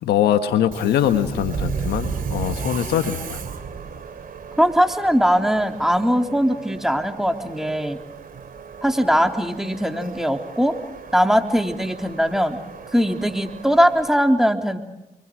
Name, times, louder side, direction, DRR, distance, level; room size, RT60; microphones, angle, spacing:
voice 1, 0.0-3.4, left 10 dB, 85° left, 9 dB, 1.6 m, -22 dB
Subway metro underground, 0.6-14.1, right 6 dB, 60° right, 3.7 m, -35 dB
voice 2, 4.6-8.0 8.8-10.7 11.1-12.6 12.9-14.8, equal, ahead, 4 dB, 3.4 m, -20 dB
29.0 x 24.0 x 6.4 m, 0.95 s
supercardioid pair, 45°, 16 cm